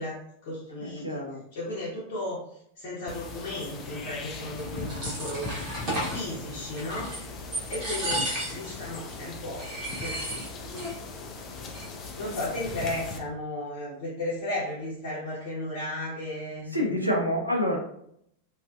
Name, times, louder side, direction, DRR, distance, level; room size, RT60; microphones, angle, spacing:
voice 1, 0.0-1.2 1.5-5.5 6.1-7.1 7.7-9.7 10.0-10.4 12.2-16.7, left 1 dB, 50° left, -7 dB, 0.8 m, -35 dB
voice 2, 0.8-1.4 16.7-17.8, equal, 90° right, -1 dB, 0.4 m, -27 dB
sound 1, 3.1-13.2, left 3 dB, 30° left, 0.4 m, -39 dB
sound 2, 4.6-6.2 6.8-7.3 7.5-8.7 9.1-9.2 9.6-10.9 11.2-11.3 11.5-12.1, right 1 dB, 35° right, 1.0 m, -33 dB
2.4 x 2.3 x 2.3 m, 0.71 s
figure-of-eight pair, 90°, 0 cm